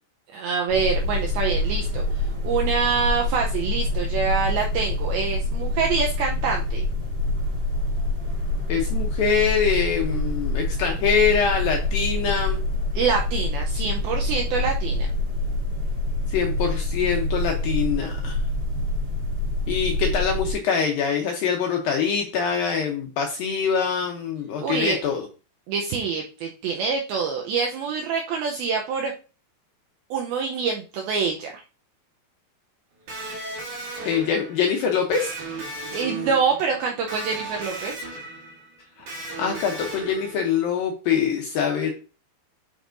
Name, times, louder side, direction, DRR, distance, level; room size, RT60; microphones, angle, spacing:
voice 1, 0.3-6.9 12.9-15.1 24.6-25.0 25.7-29.1 30.1-31.5 35.9-38.0, right 5 dB, 80° right, 1 dB, 2.2 m, -26 dB
sound 1, 0.7-20.5, left 2 dB, 30° right, 2.4 m, -26 dB
voice 2, 8.7-12.6 16.3-18.4 19.7-25.2 34.1-35.3 39.0-39.1 39.4-41.9, left 6 dB, 80° left, 2 dB, 2.1 m, -24 dB
Electric guitar, 33.1-40.8, right 2 dB, 55° right, 2.8 m, -36 dB
9.1 x 5.3 x 2.5 m, 0.34 s
omnidirectional pair, 5.0 m